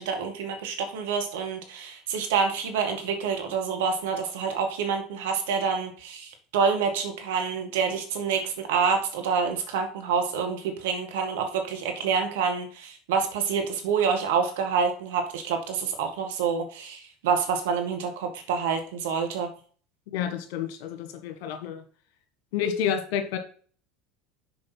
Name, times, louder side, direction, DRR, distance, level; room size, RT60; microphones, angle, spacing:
voice 1, 0.0-19.5, right 6 dB, 75° right, 4 dB, 1.9 m, -27 dB
voice 2, 20.1-21.8 22.5-23.4, left 8 dB, 65° left, 7 dB, 1.5 m, -29 dB
6.4 x 5.2 x 5.9 m, 0.44 s
hypercardioid pair, 80°, 0 cm